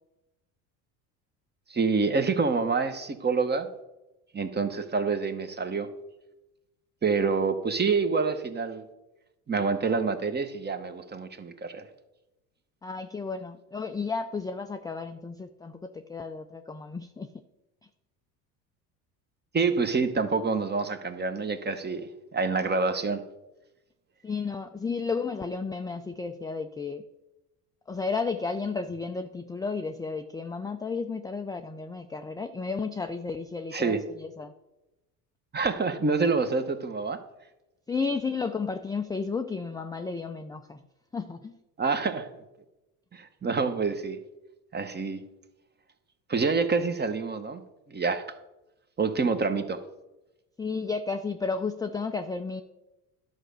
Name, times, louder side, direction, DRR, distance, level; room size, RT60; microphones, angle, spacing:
voice 1, 1.7-3.7 4.3-5.9 7.0-8.8 9.5-11.9 19.5-23.2 33.7-34.0 35.5-37.2 41.8-42.4 43.1-44.2 44.7-45.2 46.3-47.6 47.9-48.2 49.0-49.8, right 4 dB, 25° right, 9 dB, 1.0 m, -27 dB
voice 2, 12.8-17.3 24.2-27.0 27.9-34.5 37.9-40.8 41.1-41.5 50.6-52.6, left 4 dB, 10° left, 7 dB, 0.4 m, -33 dB
11.0 x 5.1 x 6.8 m, 0.99 s
supercardioid pair, 95°, 44 cm